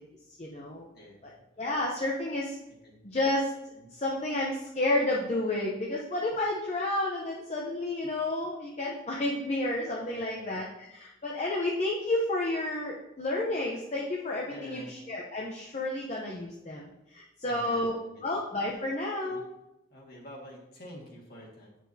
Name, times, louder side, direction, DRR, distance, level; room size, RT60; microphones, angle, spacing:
voice 1, 0.4-0.9 1.2-1.3 1.6-2.6 3.0-19.5, left 1 dB, 35° left, -2 dB, 0.7 m, -31 dB
voice 2, 0.9-1.3 2.8-3.0 3.7-3.9 10.1-10.5 14.5-14.9 17.4-18.2 19.3-19.4 19.9-21.8, equal, 50° left, -2 dB, 1.8 m, -47 dB
8.5 x 6.2 x 2.7 m, 0.89 s
head